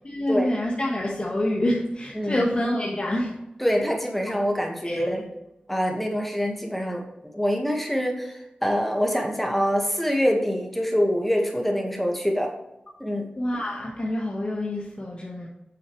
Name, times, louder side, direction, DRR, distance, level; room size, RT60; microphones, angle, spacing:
voice 1, 0.0-3.3 4.8-5.0 13.4-15.5, left 1 dB, 40° left, -3 dB, 1.6 m, -27 dB
voice 2, 2.1-2.5 3.6-5.3 5.7-7.0 7.3-12.5 13.0-13.3, equal, 5° left, 1 dB, 1.8 m, -25 dB
9.2 x 6.9 x 3.3 m, 0.91 s
wide cardioid pair, 60°, 3 cm